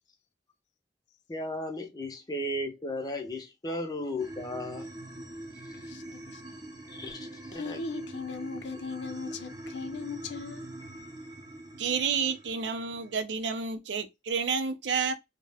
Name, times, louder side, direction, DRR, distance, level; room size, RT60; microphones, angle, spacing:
voice 1, 1.3-4.9 6.9-7.8, left 1 dB, 20° left, 0.6 m, -35 dB
sound 1, 4.2-13.2, right 1 dB, 20° right, 0.5 m, -43 dB
voice 2, 5.8-6.6 7.5-10.7, left 4 dB, 80° left, 0.5 m, -38 dB
voice 3, 11.8-15.1, right 5 dB, 85° right, 0.5 m, -30 dB
2.3 x 2.1 x 3.3 m
head